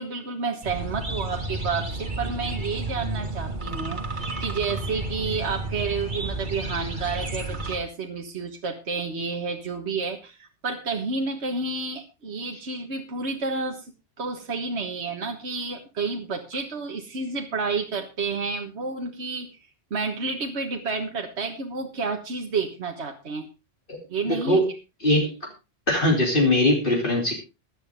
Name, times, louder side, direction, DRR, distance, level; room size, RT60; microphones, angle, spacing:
voice 1, 0.0-19.5 19.9-23.5 24.1-24.6, right 4 dB, 60° right, 2 dB, 1.8 m, -30 dB
sound 1, 0.6-7.8, right 2 dB, 40° right, 2.1 m, -31 dB
voice 2, 24.3-24.7 25.0-25.3 25.9-27.3, left 1 dB, 45° left, 0 dB, 3.4 m, -21 dB
16.0 x 11.5 x 3.6 m, 0.28 s
omnidirectional pair, 1.3 m